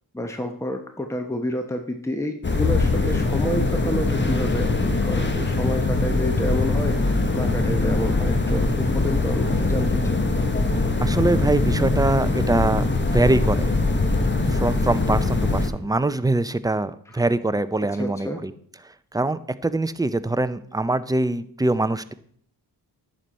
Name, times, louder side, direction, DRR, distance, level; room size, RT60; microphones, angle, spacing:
voice 1, 0.1-10.2 18.0-18.4, equal, 5° left, 5 dB, 1.1 m, -29 dB
sound 1, 2.4-15.7, left 3 dB, 25° left, 1.4 m, -22 dB
voice 2, 11.0-13.7 14.5-18.5 19.1-22.1, right 2 dB, 10° right, 13 dB, 0.6 m, -23 dB
11.0 x 7.8 x 4.3 m, 0.62 s
cardioid pair, 60°, 41 cm